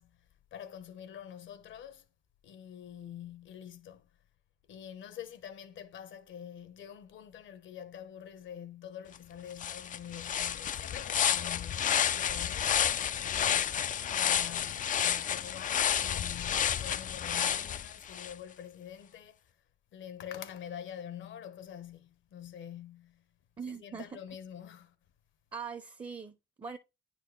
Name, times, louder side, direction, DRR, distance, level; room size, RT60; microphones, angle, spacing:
voice 1, 0.0-2.1 2.4-4.1 4.7-19.6 19.9-23.3 23.6-25.0, left 9 dB, 70° left, 1.0 m, -46 dB
sound 1, 9.1-9.2 9.6-18.3, left 9 dB, 40° left, 0.4 m, -30 dB
voice 2, 23.6-24.2 25.5-26.8, right 6 dB, 25° right, 0.8 m, -42 dB
9.7 x 4.3 x 3.2 m
cardioid pair, 90°, 20 cm